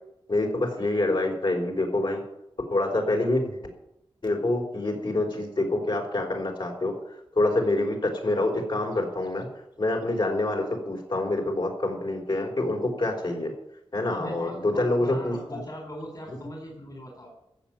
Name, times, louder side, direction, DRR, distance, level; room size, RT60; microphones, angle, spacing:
voice 1, 0.3-2.2 2.7-3.5 4.2-6.9 7.3-9.5 9.8-13.5 13.9-15.6 16.3-16.4, left 2 dB, 60° left, 0 dB, 4.7 m, -26 dB
voice 2, 13.9-17.3, equal, 40° left, 1 dB, 3.8 m, -40 dB
14.5 x 7.4 x 9.4 m, 0.83 s
wide cardioid pair, 70°, 10 cm